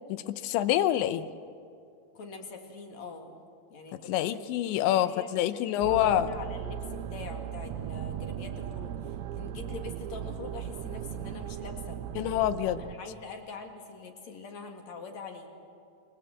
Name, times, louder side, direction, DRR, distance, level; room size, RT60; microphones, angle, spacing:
voice 1, 0.1-1.3 4.1-6.3 12.2-12.8, left 12 dB, 80° left, 13 dB, 3.0 m, -26 dB
voice 2, 2.1-4.6 4.9-12.0 12.8-15.5, left 4 dB, 50° left, 4 dB, 2.6 m, -44 dB
sound 1, 5.8-12.9, right 9 dB, 80° right, 2.2 m, -37 dB
28.0 x 22.0 x 8.1 m, 2.4 s
omnidirectional pair, 5.2 m